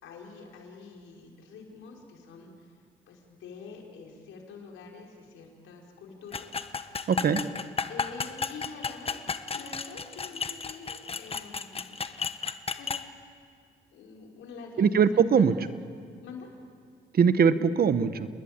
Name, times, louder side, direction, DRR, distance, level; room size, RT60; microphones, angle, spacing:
voice 1, 0.0-2.8 3.1-6.5 6.8-7.1 7.9-9.2 9.5-12.0 12.8-12.9 13.9-15.8 16.2-16.5, left 4 dB, 85° left, 0 dB, 5.2 m, -46 dB
sound 1, 6.3-13.0, left 5 dB, 30° left, 1.2 m, -33 dB
voice 2, 7.1-7.4 14.8-15.5 17.1-18.3, right 6 dB, 50° right, 12 dB, 1.2 m, -21 dB
30.0 x 20.5 x 8.9 m, 2.2 s
cardioid pair, 90°, 20 cm